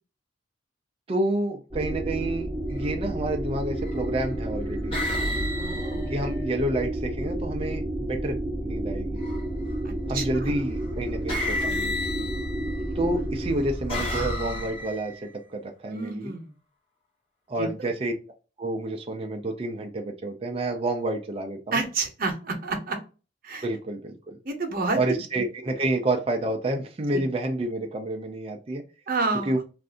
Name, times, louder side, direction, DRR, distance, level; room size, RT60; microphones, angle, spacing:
voice 1, 1.1-5.0 6.1-9.2 10.1-12.0 13.0-16.3 17.5-18.1 18.6-21.8 23.6-24.4 25.0-28.8 29.4-29.6, right 1 dB, 30° right, 2 dB, 0.4 m, -29 dB
sound 1, 1.7-14.3, right 1 dB, ahead, 1.1 m, -31 dB
sound 2, 2.6-2.9 3.8-4.3 4.9-7.0 9.2-9.7 10.8-10.9 11.3-12.9 13.5-15.2, left 1 dB, 30° left, 1.3 m, -32 dB
voice 2, 5.6-6.1 9.8-10.5 15.9-16.5 17.6-17.9 21.7-23.0 23.4-23.7 24.4-25.2 27.1-27.2 29.1-29.5, right 3 dB, 50° right, 4 dB, 0.8 m, -29 dB
2.6 x 2.5 x 3.5 m, 0.33 s
head